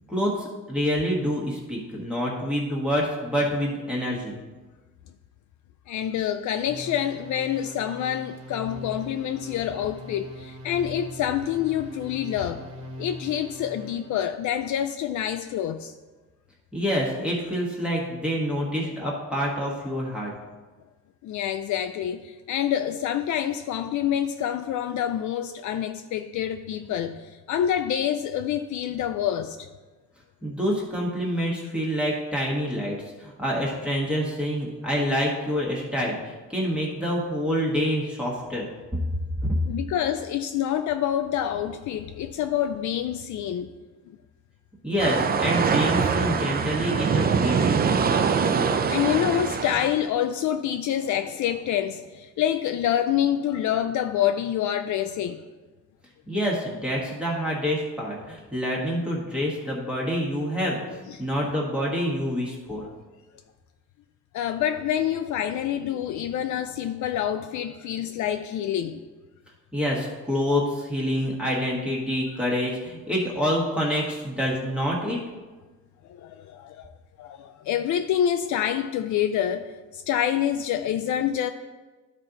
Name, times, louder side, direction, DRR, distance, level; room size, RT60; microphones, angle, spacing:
voice 1, 0.1-4.4 16.7-20.3 30.4-39.5 44.8-47.6 56.3-62.8 69.7-75.2, equal, 5° right, -5 dB, 1.4 m, -27 dB
voice 2, 5.9-12.6 13.0-15.9 21.2-29.7 39.7-43.7 44.1-44.2 48.9-55.4 61.1-61.2 62.8-62.9 64.3-69.0 76.1-81.5, left 10 dB, 70° left, 8 dB, 0.4 m, -27 dB
sound 1, 6.6-14.2, equal, 80° right, 1.6 m, -41 dB
sound 2, 45.0-50.0, right 6 dB, 30° right, 0.4 m, -23 dB
12.5 x 4.3 x 3.9 m, 1.3 s
cardioid pair, 150°, 31 cm